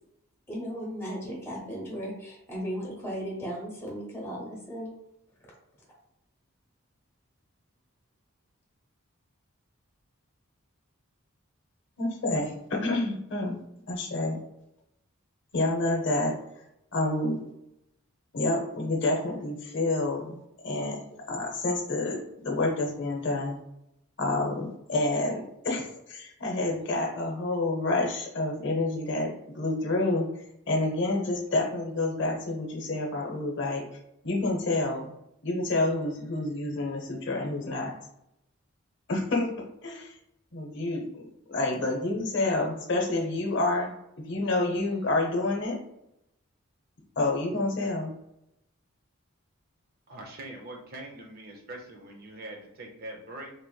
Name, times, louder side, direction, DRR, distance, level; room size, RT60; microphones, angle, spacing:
voice 1, 0.5-4.9, equal, 10° left, -4 dB, 1.0 m, -36 dB
voice 2, 12.0-13.6 13.9-14.4 15.5-16.3 16.9-17.4 18.3-21.0 21.3-23.6 24.2-33.8 34.2-35.1 35.4-37.9 39.1-39.5 39.8-40.2 40.5-43.9 44.2-45.8 47.2-48.1, left 2 dB, 55° left, 0 dB, 0.7 m, -28 dB
voice 3, 50.1-53.5, right 1 dB, 45° right, 2 dB, 0.5 m, -42 dB
3.2 x 2.9 x 2.2 m, 0.82 s
head